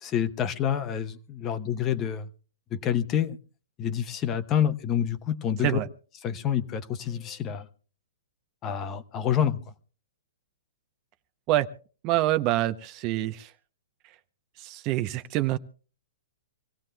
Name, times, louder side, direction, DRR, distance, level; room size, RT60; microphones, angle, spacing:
voice 1, 0.0-2.3 2.7-3.4 3.8-5.8 6.2-7.7 8.6-9.6, left 9 dB, 25° left, 11 dB, 0.9 m, -27 dB
voice 2, 12.0-13.5 14.6-15.6, right 15 dB, 30° right, 11 dB, 0.6 m, -26 dB
26.0 x 16.5 x 2.2 m, 0.40 s
hypercardioid pair, 150°, 0 cm